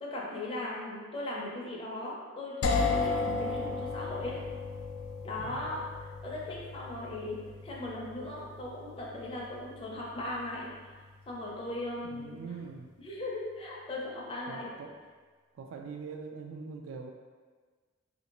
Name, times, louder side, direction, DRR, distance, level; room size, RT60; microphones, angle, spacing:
voice 1, 0.0-4.4 5.2-5.8 6.2-10.7 11.3-12.4 13.0-14.7, left 1 dB, 25° left, -4 dB, 0.5 m, -38 dB
sound 1, 2.6-12.4, left 4 dB, 85° left, 0.3 m, -36 dB
voice 2, 5.4-5.8 12.0-12.9 14.5-15.0 15.5-17.1, right 5 dB, 75° right, 2 dB, 0.3 m, -43 dB
3.2 x 2.5 x 2.9 m, 1.5 s
head